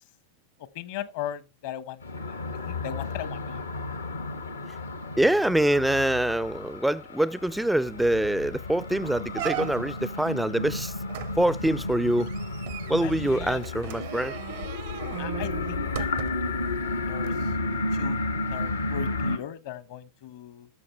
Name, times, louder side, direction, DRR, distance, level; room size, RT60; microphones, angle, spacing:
voice 1, 0.7-2.3 2.6-3.6 13.0-13.6 15.2-16.2 17.1-17.5 17.9-18.2 18.5-20.7, left 11 dB, 50° left, 1.0 m, -38 dB
sound 1, 2.0-19.4, left 2 dB, 75° left, 1.0 m, -32 dB
voice 2, 5.2-10.9 11.4-12.3 12.9-14.4, right 1 dB, 5° right, 0.4 m, -25 dB
sound 2, 7.6-7.7 8.0-8.3 8.8-8.9 9.3-10.1 11.1-16.6 17.2-17.3, right 15 dB, 50° right, 0.6 m, -38 dB
11.0 x 6.9 x 4.3 m
figure-of-eight pair, 90°, 0 cm